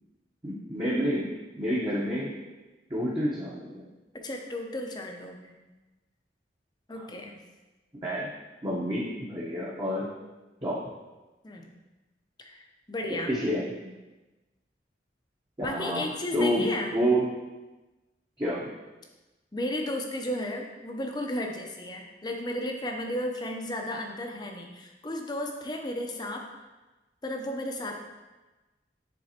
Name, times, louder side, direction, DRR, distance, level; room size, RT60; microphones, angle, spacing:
voice 1, 0.4-1.3 1.6-2.3 2.9-3.6 7.9-8.3 8.6-10.1 10.6-10.8 13.1-13.9 15.6-16.0 16.3-16.6 16.9-17.2 18.4-18.7, equal, 25° right, -8 dB, 0.9 m, -28 dB
voice 2, 4.1-5.6 6.9-7.4 11.4-11.7 12.4-13.3 15.6-16.9 19.5-26.5 27.2-28.1, left 1 dB, 25° left, 2 dB, 0.7 m, -34 dB
9.4 x 3.8 x 2.9 m, 1.1 s
head